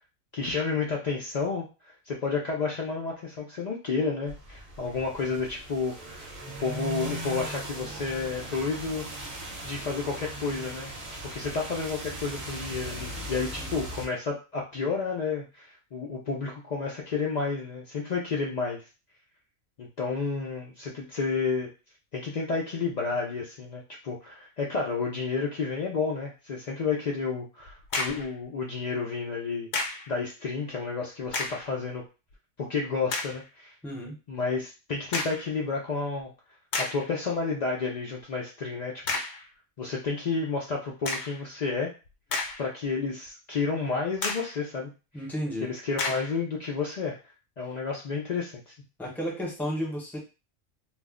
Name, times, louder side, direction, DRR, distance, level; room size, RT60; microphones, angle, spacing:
voice 1, 0.3-1.7 2.1-6.3 6.6-9.0 9.6-10.9 11.2-18.8 19.8-21.7 22.1-29.7 30.1-32.0 32.6-33.7 34.3-36.3 36.8-39.0 39.8-41.9 42.6-44.9 45.6-47.2 47.6-48.7, left 4 dB, 80° left, -2 dB, 0.3 m, -31 dB
sound 1, 4.3-14.1, right 1 dB, 35° right, 0.7 m, -38 dB
voice 2, 13.6-13.9 33.8-34.1 45.1-45.7 49.0-50.2, equal, ahead, -2 dB, 0.5 m, -33 dB
sound 2, 27.7-28.3 29.7-30.1 31.2-31.7 32.3-32.4 33.1-33.4 35.1-35.5 36.2-36.3 36.7-37.1 39.1-39.5 41.0-41.4 42.1-42.9 43.3-43.4 44.2-44.6 46.0-46.4, left 3 dB, 65° left, 0.8 m, -31 dB
2.4 x 2.1 x 3.6 m, 0.31 s
omnidirectional pair, 1.4 m